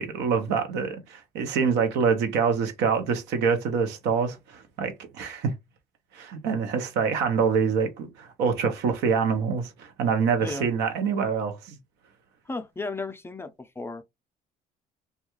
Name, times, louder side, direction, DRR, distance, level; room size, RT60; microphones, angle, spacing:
voice 1, 0.0-5.5 6.1-11.8, right 6 dB, 90° right, 0.7 m, -25 dB
voice 2, 12.5-14.0, left 3 dB, 15° left, 0.4 m, -34 dB
2.3 x 2.2 x 2.9 m
cardioid pair, 110°, 17 cm